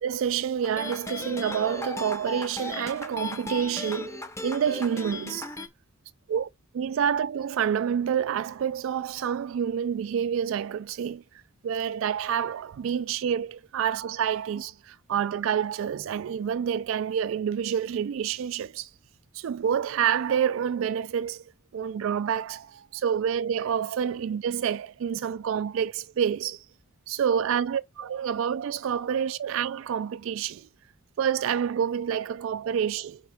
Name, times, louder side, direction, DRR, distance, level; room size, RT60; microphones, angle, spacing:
voice 1, 0.0-5.5 6.3-6.5 6.7-11.2 11.6-18.9 19.3-21.4 21.7-26.6 27.1-30.6 31.2-33.2, right 8 dB, 70° right, 0.3 m, -28 dB
sound 1, 0.6-5.7, left 2 dB, 15° left, 0.6 m, -36 dB
5.0 x 4.7 x 4.3 m
head